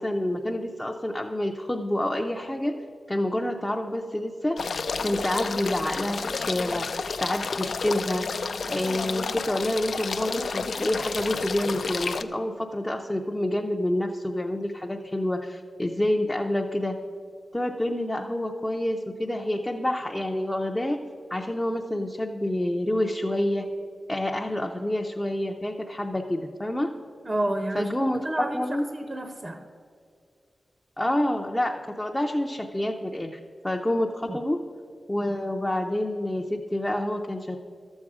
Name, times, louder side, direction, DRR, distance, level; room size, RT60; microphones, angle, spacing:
voice 1, 0.0-2.7 3.1-8.3 8.7-17.0 17.5-21.0 21.3-23.7 24.1-26.9 27.7-28.2 28.5-28.9 31.0-33.4 33.6-34.6 35.1-37.6, left 1 dB, 15° left, 1 dB, 0.5 m, -28 dB
sound 1, 4.6-12.2, left 4 dB, 70° left, 0.4 m, -31 dB
voice 2, 27.2-28.7 28.9-29.6 34.3-34.4, right 1 dB, 30° right, 7 dB, 0.6 m, -30 dB
12.5 x 7.2 x 4.8 m, 2.3 s
wide cardioid pair, 95°, 0 cm